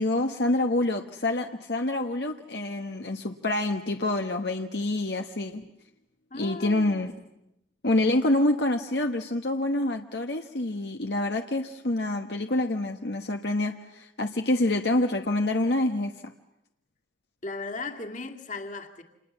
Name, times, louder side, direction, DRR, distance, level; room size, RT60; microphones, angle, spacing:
voice 1, 0.0-5.6 6.3-7.1 7.8-16.3, left 2 dB, 70° left, 1.3 m, -27 dB
voice 2, 6.3-7.0 17.4-19.0, left 3 dB, 45° left, 2.3 m, -37 dB
30.0 x 27.5 x 7.3 m
head